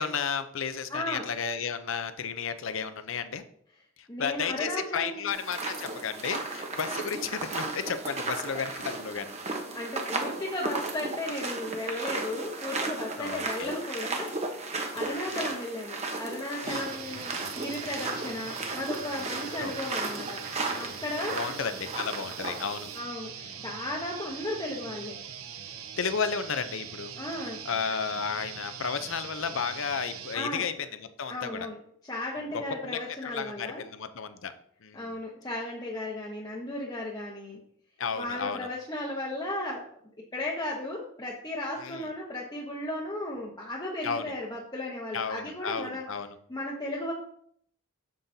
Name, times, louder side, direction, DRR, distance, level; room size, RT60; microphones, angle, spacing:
voice 1, 0.0-3.4 4.2-9.3 13.2-13.7 15.0-15.4 16.6-16.8 19.6-19.7 21.3-22.9 23.4-23.5 26.0-27.1 27.6-31.6 32.5-33.0 33.2-34.5 34.8-35.1 38.0-38.6 41.8-42.1 44.0-44.2 45.1-46.3, left 6 dB, 65° left, 11 dB, 0.6 m, -33 dB
voice 2, 0.9-1.3 4.1-5.2 9.7-14.3 14.9-21.4 22.9-23.3 23.6-25.2 27.2-27.6 30.3-30.6 31.3-31.8 32.0-33.8 34.9-37.6 38.2-39.9 40.3-46.0 46.5-47.1, left 1 dB, 20° left, -4 dB, 1.0 m, -35 dB
sound 1, 5.3-23.0, right 3 dB, 30° right, 1.0 m, -35 dB
sound 2, 16.7-30.4, right 8 dB, 80° right, 0.8 m, -42 dB
7.6 x 7.6 x 2.7 m, 0.64 s
head